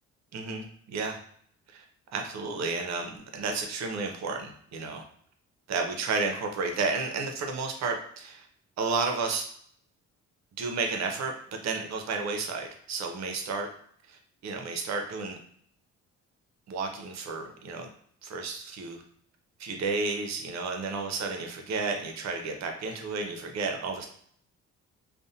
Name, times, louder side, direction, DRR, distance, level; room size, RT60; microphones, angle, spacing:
voice 1, 0.3-1.2 1.7-1.8 2.1-5.0 5.7-8.5 8.8-9.5 10.6-13.7 14.1-15.4 16.7-17.9 18.2-19.0 19.6-24.1, right 4 dB, 60° right, 4 dB, 0.6 m, -32 dB
2.5 x 2.0 x 2.7 m, 0.63 s
cardioid pair, 90°, 30 cm